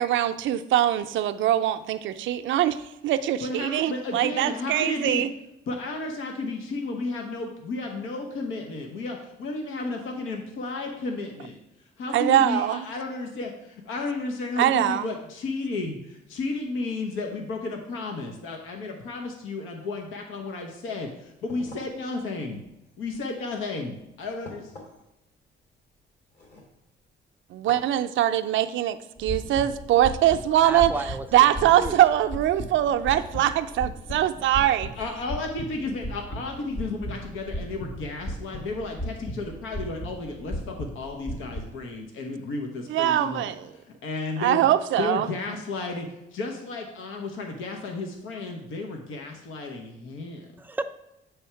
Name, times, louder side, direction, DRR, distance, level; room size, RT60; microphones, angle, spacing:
voice 1, 0.0-5.3 12.1-12.8 14.6-15.1 27.5-30.9 31.3-34.9 42.9-43.7 44.4-45.3, right 12 dB, 75° right, 9 dB, 0.5 m, -22 dB
voice 2, 3.4-5.2 5.7-11.6 12.0-22.6 23.0-24.7 35.0-43.5 44.0-44.7 45.0-50.5, left 3 dB, 85° left, 2 dB, 1.0 m, -33 dB
Coffee cup table, 21.3-27.2 27.7-28.0, left 2 dB, 55° left, 2.6 m, -49 dB
sound 1, 29.2-41.7, equal, 35° left, 1.6 m, -36 dB
voice 3, 30.6-31.5 31.8-32.0 50.6-50.8, right 2 dB, 10° right, 8 dB, 0.4 m, -32 dB
7.1 x 3.4 x 5.6 m, 0.89 s
cardioid pair, 90°, 20 cm